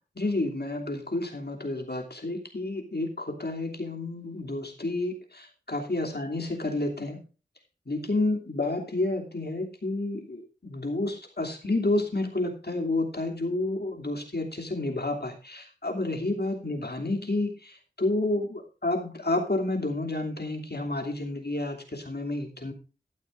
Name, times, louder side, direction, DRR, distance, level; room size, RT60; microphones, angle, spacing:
voice 1, 0.1-7.2 7.9-22.7, left 2 dB, 60° left, 2 dB, 2.9 m, -30 dB
14.0 x 11.5 x 2.6 m, 0.35 s
wide cardioid pair, 40°, 19 cm